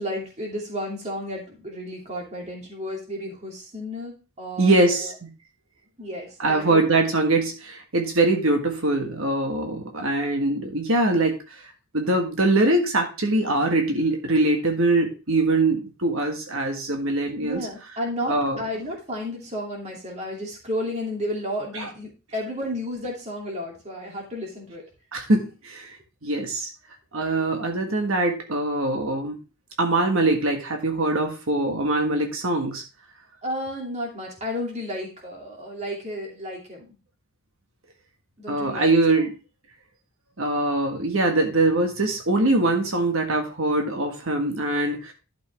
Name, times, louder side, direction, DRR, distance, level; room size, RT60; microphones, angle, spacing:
voice 1, 0.0-5.1 6.0-6.8 17.4-24.8 33.4-36.9 38.4-38.9, equal, 30° right, -1 dB, 2.7 m, -32 dB
voice 2, 4.6-5.3 6.4-11.5 11.9-17.6 18.3-18.6 21.7-21.9 25.1-26.0 26.2-26.7 27.1-29.4 29.8-32.8 38.5-39.4 40.4-45.1, right 2 dB, 65° right, 3 dB, 1.5 m, -23 dB
11.5 x 6.2 x 3.4 m, 0.31 s
head